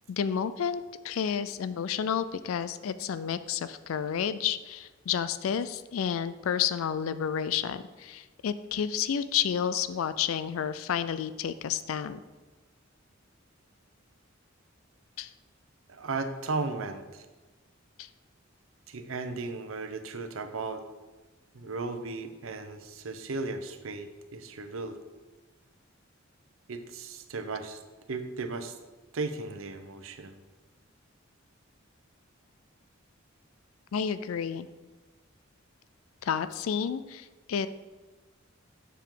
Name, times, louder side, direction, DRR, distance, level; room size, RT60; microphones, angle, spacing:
voice 1, 0.1-12.2 15.2-15.3 18.0-18.1 33.9-34.7 36.2-37.7, left 8 dB, 85° left, 14 dB, 0.4 m, -30 dB
voice 2, 15.9-17.2 18.9-20.9 21.5-25.0 26.7-27.8 28.1-28.8 29.1-30.4, right 3 dB, 75° right, 8 dB, 0.7 m, -36 dB
7.4 x 6.9 x 3.8 m, 1.2 s
head